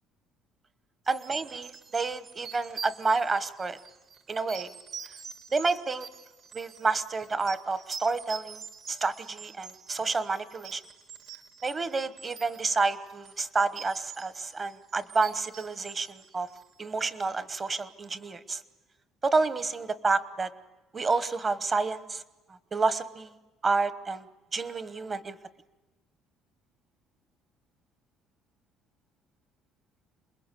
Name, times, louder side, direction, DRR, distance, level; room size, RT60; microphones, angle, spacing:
voice 1, 1.1-3.8 4.3-4.7 5.5-6.1 6.5-8.6 8.9-10.8 11.6-16.5 16.8-18.6 19.2-20.5 20.9-22.2 22.7-23.3 23.6-24.2 24.5-25.4, right 4 dB, 25° right, 13 dB, 1.1 m, -29 dB
sound 1, 1.1-16.9, right 6 dB, 45° right, 1.4 m, -45 dB
27.5 x 21.5 x 8.3 m, 1.1 s
cardioid pair, 140°, 0 cm